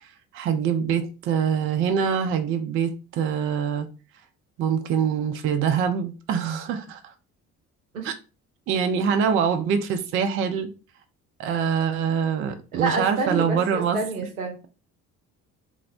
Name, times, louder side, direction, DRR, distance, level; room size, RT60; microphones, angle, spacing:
voice 1, 0.3-3.9 4.6-7.1 8.0-8.1 8.7-10.7 11.4-14.0, right 7 dB, 35° right, 0.4 m, -24 dB
voice 2, 12.7-14.6, right 3 dB, 85° right, 0.6 m, -28 dB
2.6 x 2.0 x 2.5 m
figure-of-eight pair, 50°, 42 cm